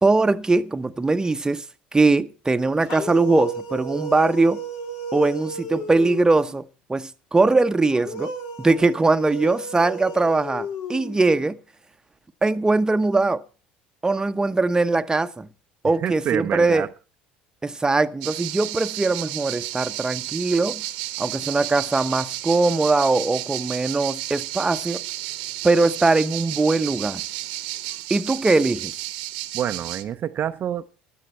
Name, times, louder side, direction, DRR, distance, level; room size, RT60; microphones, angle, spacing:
voice 1, 0.0-1.6 1.9-4.6 5.1-8.3 8.6-11.6 12.4-13.4 14.0-15.5 15.8-16.9 17.6-20.8 21.2-25.0 25.6-27.2 28.1-28.9, right 3 dB, 15° right, 0.9 m, -21 dB
sound 1, 2.8-6.6 7.9-11.5, right 2 dB, 65° left, 2.5 m, -34 dB
voice 2, 16.0-16.9 29.5-30.9, right 10 dB, 45° right, 0.6 m, -27 dB
sound 2, 18.2-30.0, right 16 dB, 70° right, 1.1 m, -32 dB
15.5 x 12.0 x 4.4 m
hypercardioid pair, 65°, 5 cm